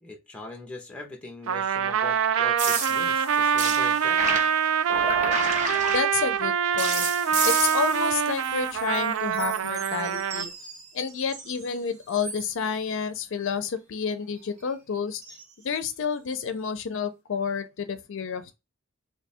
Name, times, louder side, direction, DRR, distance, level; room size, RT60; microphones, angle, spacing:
voice 1, 0.0-4.2, left 2 dB, 5° left, 0.6 m, -41 dB
Trumpet, 1.5-10.5, right 8 dB, 65° right, 0.3 m, -25 dB
sound 1, 2.6-6.4 6.8-9.0 9.3-11.7 12.1-12.5 15.2-15.4 16.3-16.4, right 3 dB, 35° right, 0.7 m, -32 dB
voice 2, 5.9-7.1 7.4-10.5 10.9-15.4 15.6-18.6, left 6 dB, 60° left, 0.4 m, -30 dB
2.9 x 2.2 x 4.2 m
head